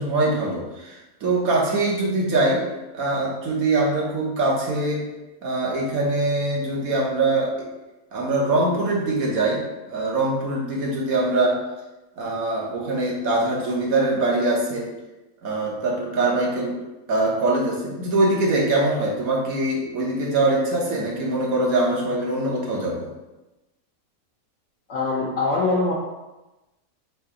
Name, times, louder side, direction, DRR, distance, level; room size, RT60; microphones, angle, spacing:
voice 1, 0.0-2.7 2.9-5.0 5.4-7.5 8.1-11.6 12.2-14.9 15.4-16.8 17.1-23.1, right 2 dB, 75° right, -3 dB, 1.5 m, -23 dB
voice 2, 24.9-25.9, left 3 dB, 65° left, -4 dB, 1.1 m, -22 dB
3.9 x 2.8 x 4.8 m, 1.0 s
omnidirectional pair, 1.5 m